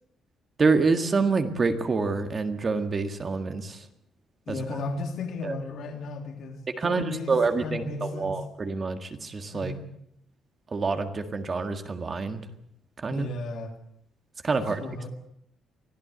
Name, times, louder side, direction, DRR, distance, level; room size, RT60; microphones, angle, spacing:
voice 1, 0.6-3.9 4.5-4.8 5.4-5.5 6.8-9.7 10.7-12.4 13.0-13.3 14.4-14.8, right 4 dB, 25° right, 7 dB, 1.8 m, -27 dB
voice 2, 4.5-7.3 7.6-8.4 9.5-9.9 13.1-13.7 14.6-15.1, left 3 dB, 55° left, 4 dB, 3.3 m, -34 dB
24.5 x 15.5 x 8.1 m, 0.72 s
cardioid pair, 170°, 0 cm